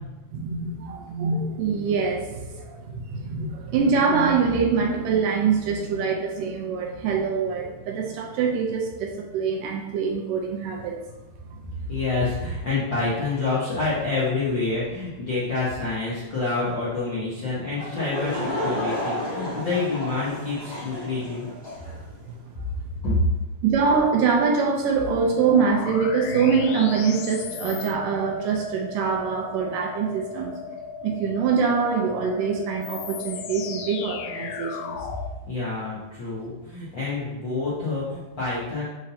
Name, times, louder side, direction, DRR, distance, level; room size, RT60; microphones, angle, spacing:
voice 1, 0.3-11.0 19.5-19.6 23.6-30.5 31.0-35.0, right 5 dB, 75° right, 1 dB, 2.3 m, -24 dB
voice 2, 11.9-21.5 23.0-23.2 35.5-38.8, left 3 dB, 60° left, -9 dB, 1.3 m, -27 dB
Laughter / Crowd, 17.7-22.0, equal, 20° left, 0.7 m, -31 dB
sound 1, 25.4-35.3, left 6 dB, 80° left, 1.9 m, -36 dB
10.5 x 3.9 x 2.8 m, 1.1 s
omnidirectional pair, 4.2 m